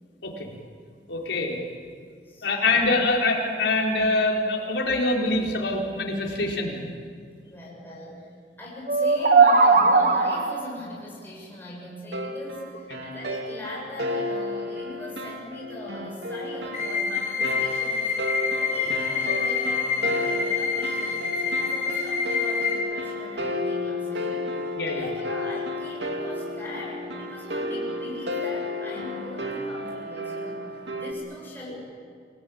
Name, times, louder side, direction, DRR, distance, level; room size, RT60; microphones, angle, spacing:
voice 1, 1.1-1.6 2.4-6.8 24.7-25.0, left 2 dB, 80° left, -1 dB, 4.5 m, -24 dB
voice 2, 2.2-2.9 7.4-8.3 8.6-18.2 18.5-30.6 30.9-31.7, left 1 dB, 10° left, -5 dB, 7.1 m, -40 dB
sound 1, 8.9-10.7, right 4 dB, 50° right, 1.5 m, -18 dB
sound 2, 12.1-31.1, left 1 dB, 75° right, 2.8 m, -32 dB
sound 3, 16.7-22.7, left 5 dB, 45° left, 6.4 m, -27 dB
28.5 x 18.5 x 8.9 m, 2.2 s
head